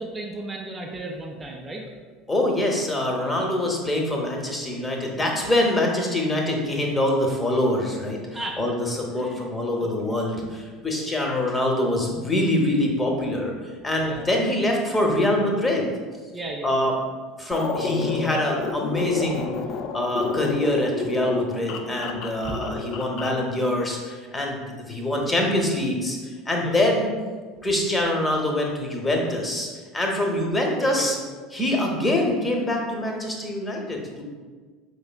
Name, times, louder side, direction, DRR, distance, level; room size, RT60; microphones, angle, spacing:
voice 1, 0.0-1.8 8.3-8.6 9.2-9.4 9.8-10.1 11.0-11.3 14.0-14.3 16.3-16.9 25.2-25.4 26.6-26.7 30.8-31.1, right 2 dB, 20° right, -1 dB, 0.4 m, -35 dB
voice 2, 2.3-13.5 13.8-15.9 16.6-16.9 17.4-19.5 19.9-26.2 26.5-27.1 27.6-29.7 29.9-31.2 31.5-34.2, left 1 dB, 15° left, 0 dB, 0.8 m, -24 dB
sound 1, 17.5-23.4, left 5 dB, 45° left, 0.3 m, -30 dB
5.0 x 3.3 x 2.2 m, 1.5 s
figure-of-eight pair, 70°, 0 cm